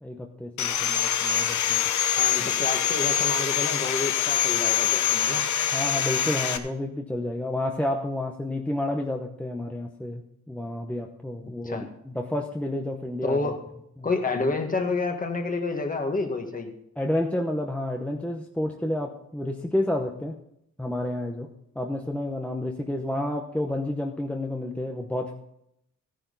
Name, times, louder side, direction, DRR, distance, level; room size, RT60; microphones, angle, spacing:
voice 1, 0.0-1.9 5.7-13.4 17.0-20.4 20.8-21.5 21.8-25.3, left 1 dB, 5° left, 2 dB, 0.9 m, -30 dB
Sawing, 0.6-6.6, left 10 dB, 75° left, 1.0 m, -24 dB
voice 2, 2.2-5.5 11.6-11.9 13.2-13.6 14.0-16.7, left 3 dB, 30° left, 4 dB, 1.7 m, -29 dB
14.0 x 10.0 x 4.0 m, 0.77 s
cardioid pair, 115°, 29 cm